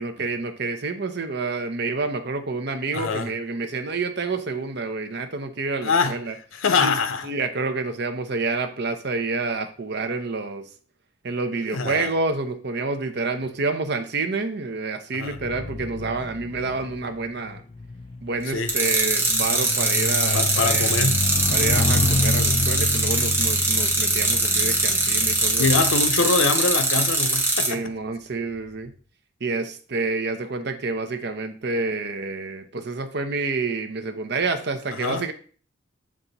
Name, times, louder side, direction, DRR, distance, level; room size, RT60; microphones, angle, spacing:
voice 1, 0.0-6.3 6.8-6.9 7.2-10.7 11.2-17.6 18.2-20.9 21.5-25.7 27.7-28.9 29.4-35.3, right 3 dB, 55° right, 0.7 m, -28 dB
voice 2, 2.9-3.3 5.8-7.3 11.7-12.1 15.1-15.4 18.5-18.7 20.3-21.3 25.6-27.9 34.9-35.2, left 4 dB, 85° left, 0.7 m, -24 dB
sound 1, 15.3-26.9 27.7-27.9, left 3 dB, 30° left, 0.3 m, -29 dB
sound 2, 18.7-27.7, right 2 dB, 10° right, 1.2 m, -22 dB
7.3 x 3.5 x 4.0 m
head